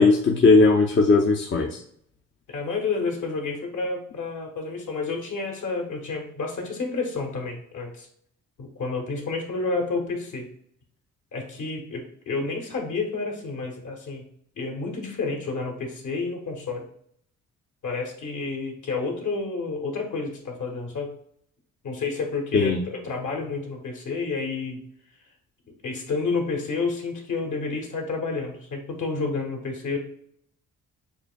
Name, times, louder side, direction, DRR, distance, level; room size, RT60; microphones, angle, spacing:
voice 1, 0.0-1.8 22.5-22.9, left 3 dB, 35° left, 0 dB, 0.7 m, -18 dB
voice 2, 2.5-8.1 8.6-10.5 11.3-14.2 14.5-16.8 17.8-21.1 21.8-24.8 25.7-30.0, left 4 dB, 60° left, 1 dB, 1.5 m, -30 dB
6.9 x 2.5 x 2.3 m, 0.66 s
supercardioid pair, 55°, 34 cm